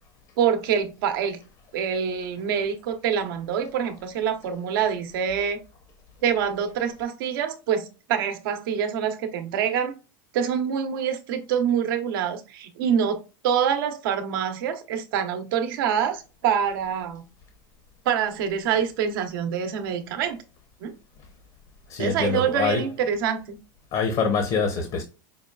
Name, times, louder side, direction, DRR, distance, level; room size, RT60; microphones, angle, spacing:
voice 1, 0.4-1.4 1.7-5.6 6.2-9.9 10.3-17.2 18.0-20.4 20.8-20.9 22.0-23.6, right 8 dB, 75° right, 0.8 m, -26 dB
voice 2, 21.9-22.9 23.9-25.0, left 5 dB, 45° left, 0.8 m, -25 dB
5.4 x 2.3 x 2.3 m
supercardioid pair, 120°, 11 cm